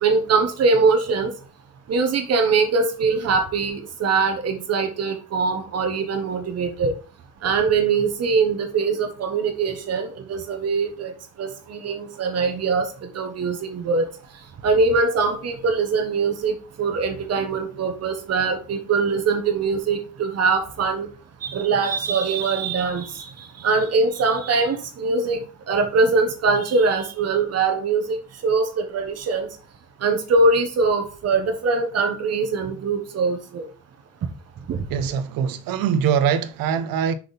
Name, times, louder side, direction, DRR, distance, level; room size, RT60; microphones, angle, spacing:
voice 1, 0.0-1.3 1.9-6.9 7.4-11.1 11.4-14.1 14.6-21.1 21.4-28.2 28.4-29.5 30.0-33.7 34.7-34.9, right 4 dB, 45° right, 1.1 m, -22 dB
voice 2, 34.9-37.2, right 8 dB, 85° right, 0.7 m, -22 dB
6.0 x 5.1 x 4.0 m
cardioid pair, 180°, 34 cm